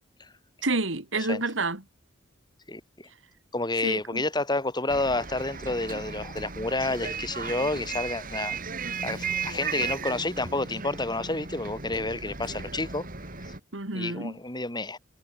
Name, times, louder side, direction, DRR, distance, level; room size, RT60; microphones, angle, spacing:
voice 1, 0.6-1.8 3.8-4.2 13.7-14.4, right 3 dB, 90° right, 2.9 m, -29 dB
voice 2, 2.7-3.1 3.5-8.6 9.0-13.0 13.4-13.5 13.9-15.0, left 2 dB, 25° left, 5.0 m, -30 dB
Bus, 4.9-13.6, right 5 dB, 45° right, 3.9 m, -36 dB
head